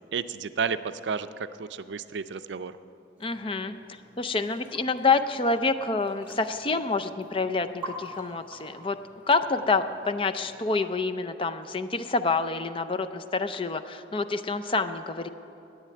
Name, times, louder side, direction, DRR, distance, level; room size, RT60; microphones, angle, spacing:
voice 1, 0.1-2.8, right 6 dB, 75° right, 12 dB, 0.5 m, -32 dB
voice 2, 3.2-3.7 4.2-9.0 9.3-15.3, left 3 dB, 30° left, 10 dB, 0.5 m, -27 dB
sound 1, 3.2-10.6, right 2 dB, 10° right, 2.2 m, -47 dB
11.0 x 9.4 x 8.4 m, 2.7 s
head